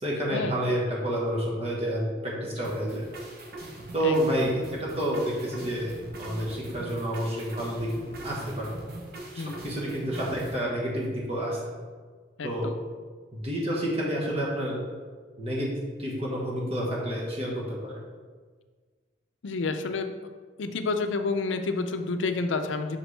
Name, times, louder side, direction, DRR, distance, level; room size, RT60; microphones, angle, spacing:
voice 1, 0.0-3.1 3.9-7.9 8.2-8.7 9.3-11.6 12.4-12.7 13.3-14.8 15.4-15.7 16.0-18.0, equal, 35° right, -4 dB, 1.3 m, -29 dB
sound 1, 2.6-10.6, right 1 dB, 55° right, 1.0 m, -41 dB
voice 2, 12.4-12.7 19.4-20.2 20.6-23.0, left 3 dB, 90° left, 8 dB, 0.5 m, -29 dB
6.0 x 5.7 x 3.3 m, 1.5 s
head